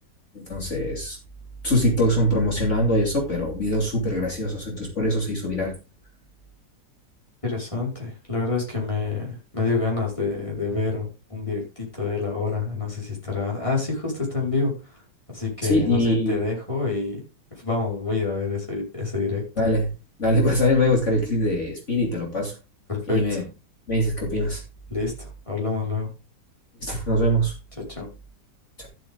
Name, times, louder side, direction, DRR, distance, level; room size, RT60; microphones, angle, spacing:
voice 1, 0.3-1.2 1.6-5.7 15.6-16.5 19.6-19.9 20.2-22.5 23.1-23.4 23.9-24.6 26.8-27.6 28.8-28.9, left 1 dB, 40° left, -1 dB, 3.0 m, -23 dB
voice 2, 7.4-17.2 17.5-19.4 22.9-23.4 24.9-26.1 27.8-28.1, left 4 dB, 15° left, -2 dB, 5.1 m, -27 dB
13.0 x 8.0 x 3.7 m, 0.30 s
omnidirectional pair, 2.0 m